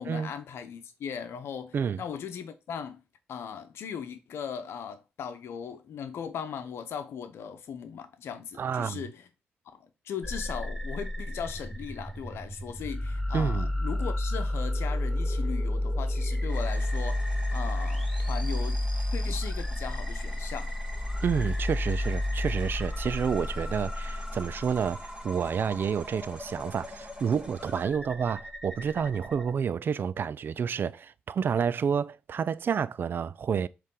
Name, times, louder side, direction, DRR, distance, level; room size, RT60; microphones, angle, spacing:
voice 1, 0.0-3.0 3.3-9.3 9.7-18.9 19.1-20.7, left 7 dB, 75° left, 0.9 m, -38 dB
voice 2, 8.6-9.0 13.3-13.7 21.2-33.7, right 7 dB, 55° right, 0.4 m, -29 dB
sound 1, 10.2-29.5, left 1 dB, 5° left, 1.3 m, -31 dB
sound 2, 16.5-27.9, right 1 dB, 20° right, 2.7 m, -49 dB
7.4 x 3.4 x 3.8 m
supercardioid pair, 55°, 4 cm